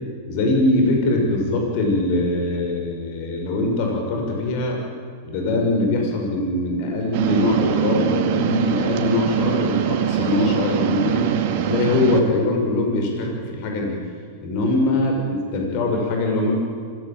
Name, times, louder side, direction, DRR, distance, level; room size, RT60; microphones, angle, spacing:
voice 1, 0.3-4.8 5.2-11.3 11.6-13.9 14.4-16.5, left 2 dB, 50° left, 2 dB, 6.3 m, -22 dB
sound 1, 7.1-12.2, right 9 dB, 55° right, 2.4 m, -22 dB
25.5 x 18.0 x 9.1 m, 2.1 s
hypercardioid pair, 95°, 0 cm